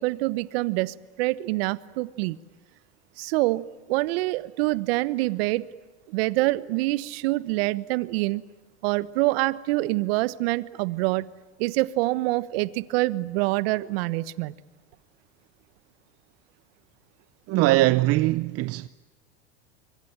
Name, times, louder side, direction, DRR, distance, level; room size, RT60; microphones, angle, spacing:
voice 1, 0.0-2.4 3.2-5.6 6.1-8.4 8.8-11.3 11.6-14.5, right 20 dB, 65° right, 1.3 m, -26 dB
voice 2, 17.5-18.9, right 19 dB, 45° right, 0.8 m, -21 dB
26.0 x 23.5 x 8.9 m
hypercardioid pair, 100°, 33 cm